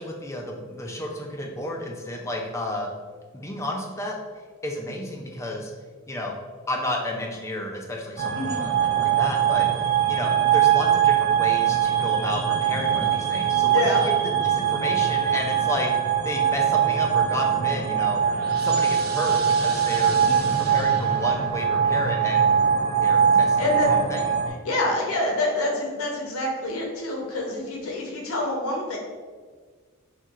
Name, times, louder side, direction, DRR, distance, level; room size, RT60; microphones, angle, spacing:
voice 1, 0.0-2.9 3.4-4.2 4.6-5.7 6.1-6.4 6.7-15.9 16.2-18.2 18.6-20.2 20.6-22.6 23.0-24.2, left 1 dB, 15° left, 0 dB, 0.4 m, -32 dB
sound 1, 8.2-24.5, right 8 dB, 45° right, 0.4 m, -22 dB
voice 2, 13.7-14.0 20.1-20.5 23.6-23.9 24.6-29.0, left 1 dB, 80° left, -1 dB, 0.8 m, -26 dB
4.2 x 2.7 x 2.4 m, 1.5 s
head